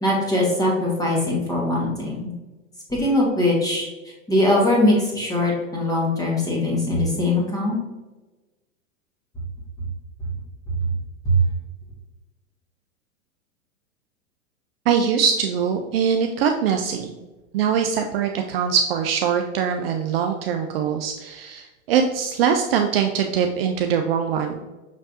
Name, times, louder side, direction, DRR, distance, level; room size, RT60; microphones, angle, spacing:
voice 1, 0.0-2.3 2.9-7.8 11.2-11.4, left 1 dB, 10° left, -3 dB, 1.5 m, -21 dB
voice 2, 14.9-17.1 17.5-24.6, right 7 dB, 50° right, 4 dB, 0.4 m, -22 dB
6.2 x 3.2 x 2.7 m, 1.1 s
hypercardioid pair, 105°, 40 cm